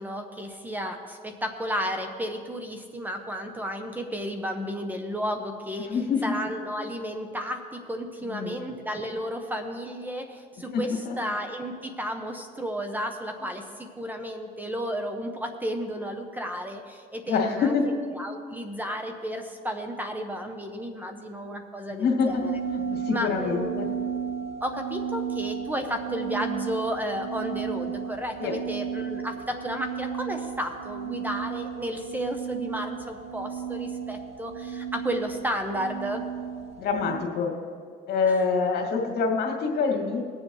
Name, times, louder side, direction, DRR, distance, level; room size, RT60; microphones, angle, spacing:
voice 1, 0.0-6.0 6.2-17.8 18.1-22.6 23.1-23.8 24.6-36.2 38.3-38.4, equal, 10° right, 5 dB, 0.9 m, -33 dB
voice 2, 5.8-6.3 8.2-8.6 10.7-11.2 17.3-17.9 21.9-23.9 28.4-28.6 36.8-37.5 38.1-40.2, left 5 dB, 70° left, 1 dB, 2.2 m, -26 dB
sound 1, 22.3-37.2, right 7 dB, 40° right, 0.6 m, -34 dB
20.5 x 7.5 x 3.2 m, 2.1 s
cardioid pair, 110°, 17 cm